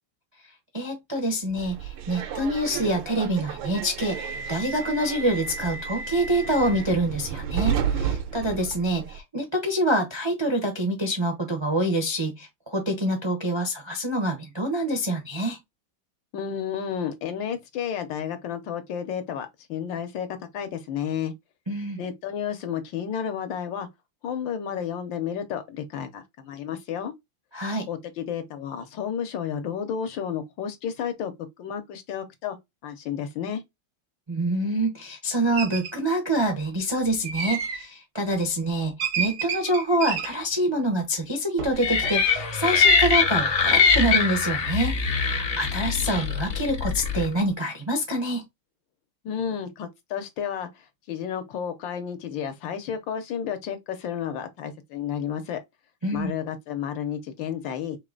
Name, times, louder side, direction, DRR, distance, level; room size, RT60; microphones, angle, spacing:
voice 1, 0.7-4.2 4.5-15.6 21.7-22.0 27.5-27.9 34.3-48.4 56.0-56.3, right 1 dB, 35° right, 0.4 m, -26 dB
Subway metro underground, 1.6-9.2, right 7 dB, 85° right, 1.5 m, -32 dB
voice 2, 16.3-20.3 20.5-21.3 22.0-23.9 24.2-27.1 27.9-32.6 32.8-33.6 49.2-55.6 56.1-58.0, left 8 dB, 75° left, 1.5 m, -31 dB
sound 1, 35.5-35.9 37.2-37.9 39.0-40.4 41.6-41.7 42.0-42.5, right 6 dB, 55° right, 0.8 m, -30 dB
sound 2, 41.8-47.2, left 5 dB, 45° left, 1.0 m, -22 dB
3.8 x 3.2 x 3.8 m
omnidirectional pair, 2.1 m